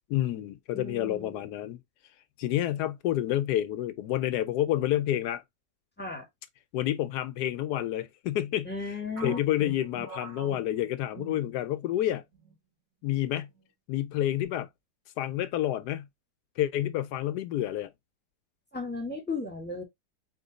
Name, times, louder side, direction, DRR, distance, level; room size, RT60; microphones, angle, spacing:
voice 1, 0.1-1.8 2.4-5.4 6.7-8.7 9.2-12.2 13.0-13.5 13.9-14.7 15.2-16.1 16.6-17.9, left 12 dB, 75° left, 1.1 m, -29 dB
voice 2, 0.7-1.5 6.0-6.3 8.6-9.7 18.7-19.8, left 3 dB, 5° left, 1.3 m, -35 dB
sound 1, 9.2-12.0 12.3-12.5 13.2-13.6, right 3 dB, 65° right, 2.1 m, -45 dB
4.3 x 3.0 x 3.9 m
omnidirectional pair, 1.9 m